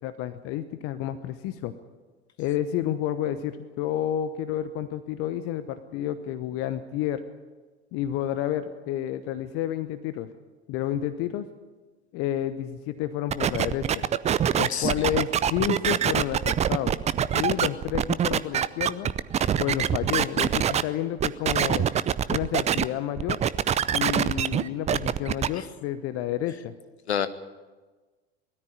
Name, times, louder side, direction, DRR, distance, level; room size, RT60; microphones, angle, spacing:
voice 1, 0.0-1.7 2.4-7.2 7.9-10.3 10.7-11.5 12.1-13.9 14.6-17.0 17.3-19.1 19.6-21.9 22.3-23.4 23.9-26.7, left 11 dB, 45° left, 12 dB, 1.0 m, -30 dB
sound 1, 13.3-20.8 21.2-22.8 23.2-25.5, right 9 dB, 20° right, 0.6 m, -24 dB
voice 2, 14.7-15.1 25.6-25.7 27.1-27.3, left 8 dB, 75° left, 12 dB, 1.2 m, -28 dB
20.0 x 13.5 x 9.8 m, 1.3 s
figure-of-eight pair, 80°, 32 cm